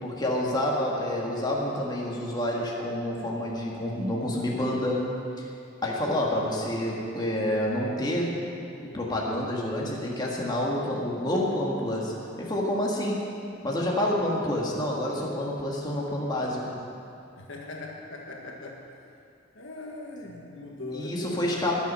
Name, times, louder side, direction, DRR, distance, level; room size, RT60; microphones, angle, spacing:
voice 1, 0.0-5.1 5.4-5.5 5.8-8.3 8.8-12.1 12.4-13.3 13.6-16.7 20.9-21.7, left 1 dB, 20° left, -3 dB, 1.9 m, -28 dB
voice 2, 17.4-18.8 19.5-21.7, left 2 dB, 65° left, -1 dB, 1.6 m, -40 dB
20.5 x 7.3 x 5.6 m, 2.5 s
head